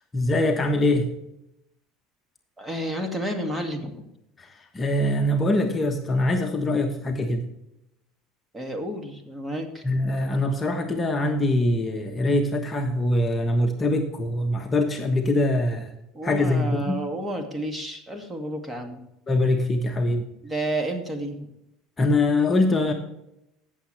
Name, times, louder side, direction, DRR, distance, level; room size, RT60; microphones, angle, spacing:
voice 1, 0.1-1.1 4.4-7.5 9.8-15.9 16.2-17.0 19.3-20.2 22.0-22.9, left 1 dB, 20° left, 3 dB, 1.2 m, -23 dB
voice 2, 2.6-4.0 8.5-9.9 16.1-19.1 20.4-21.5, right 1 dB, 15° right, 4 dB, 2.1 m, -31 dB
15.5 x 7.2 x 3.3 m, 0.83 s
supercardioid pair, 100°, 0 cm